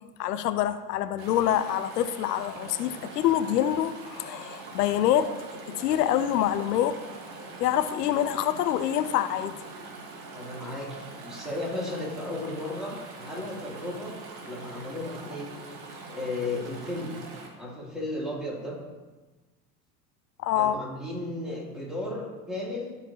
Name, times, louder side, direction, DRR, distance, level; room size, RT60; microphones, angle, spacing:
voice 1, 0.2-5.3 5.8-7.0 7.6-9.7 20.4-20.8, left 11 dB, 75° left, 12 dB, 0.7 m, -26 dB
Chatter / Stream, 1.2-17.5, right 3 dB, 50° right, 1.5 m, -43 dB
voice 2, 10.3-14.2 14.4-15.5 16.1-17.2 17.6-18.8 20.5-23.0, left 2 dB, ahead, -5 dB, 2.8 m, -34 dB
13.0 x 4.9 x 2.8 m, 1.2 s
hypercardioid pair, 80°, 48 cm